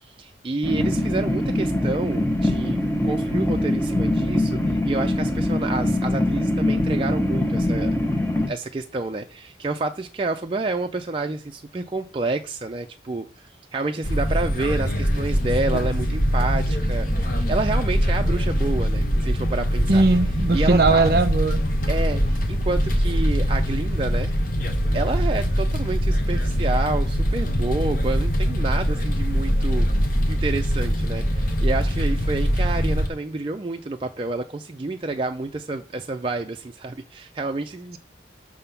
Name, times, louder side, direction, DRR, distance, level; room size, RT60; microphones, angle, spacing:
voice 1, 0.0-7.9 8.5-20.0 20.5-21.1 21.9-24.3 24.9-29.9 30.3-38.0, right 3 dB, 30° right, 0.4 m, -29 dB
sound 1, 0.6-8.5, left 1 dB, 10° left, 0.8 m, -23 dB
sound 2, 14.0-33.1, equal, 50° left, 1.1 m, -22 dB
voice 2, 19.9-21.6, right 3 dB, 55° right, 0.8 m, -19 dB
6.7 x 3.6 x 5.6 m
head